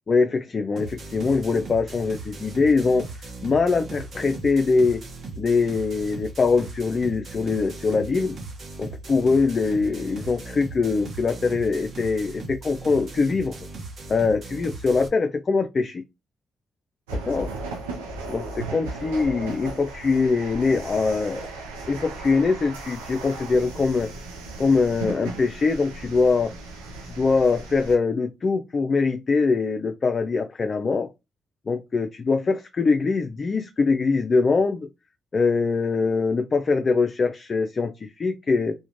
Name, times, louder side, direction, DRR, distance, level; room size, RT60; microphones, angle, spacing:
voice 1, 0.1-3.1 3.4-5.0 5.4-8.4 8.8-13.6 14.1-16.0 17.1-17.5 18.2-21.5 21.9-24.1 24.6-26.5 27.2-31.1 31.7-34.9 35.3-38.7, left 4 dB, 45° left, 0.3 m, -23 dB
sound 1, 0.8-15.1, right 3 dB, 55° right, 0.8 m, -38 dB
sound 2, 17.1-28.0, right 3 dB, 90° right, 0.5 m, -36 dB
2.4 x 2.1 x 2.9 m
hypercardioid pair, 45°, 0 cm